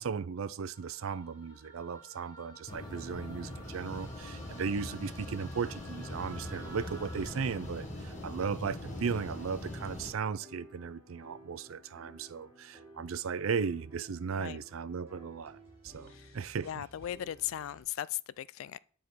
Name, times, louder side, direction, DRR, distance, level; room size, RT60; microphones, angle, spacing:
voice 1, 0.0-15.6 15.8-16.8, right 6 dB, 90° right, 0.5 m, -36 dB
sound 1, 0.7-8.0, right 1 dB, 20° left, 1.2 m, -54 dB
sound 2, 2.7-10.1, left 1 dB, 40° left, 1.7 m, -42 dB
sound 3, 5.9-17.8, right 1 dB, 10° right, 4.4 m, -55 dB
voice 2, 16.6-18.8, left 12 dB, 80° left, 0.3 m, -38 dB
9.3 x 4.8 x 4.3 m
head